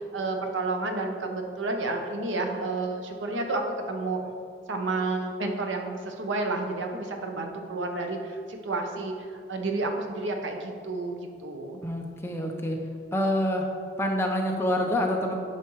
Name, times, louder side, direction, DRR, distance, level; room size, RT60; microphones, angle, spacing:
voice 1, 0.1-3.6 3.9-4.2 4.7-9.1 9.5-11.8, right 3 dB, 90° right, 3 dB, 0.8 m, -30 dB
voice 2, 11.8-12.8 13.1-13.6 14.0-15.3, left 1 dB, 15° left, 1 dB, 0.7 m, -26 dB
9.8 x 5.8 x 3.1 m, 2.3 s
head